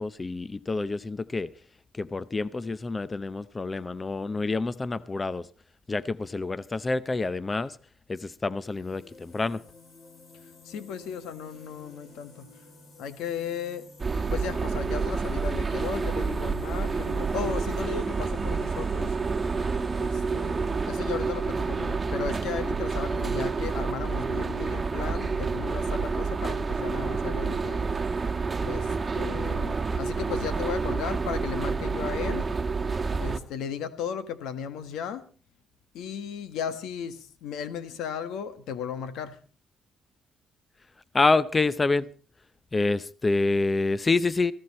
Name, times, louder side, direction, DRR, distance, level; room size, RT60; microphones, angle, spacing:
voice 1, 0.0-1.5 2.0-5.4 5.9-7.8 8.1-9.6 41.1-42.1 42.7-44.5, left 3 dB, 25° left, 0.7 m, -27 dB
sound 1, 8.6-22.0, left 2 dB, 65° left, 7.4 m, -52 dB
voice 2, 10.6-12.5 13.0-13.9 14.3-19.2 20.0-27.9 28.6-32.5 33.2-35.3 35.9-39.4, left 7 dB, 90° left, 1.6 m, -35 dB
sound 2, 14.0-33.4, right 4 dB, 30° right, 1.4 m, -29 dB
18.0 x 15.5 x 4.3 m
cardioid pair, 90°, 0 cm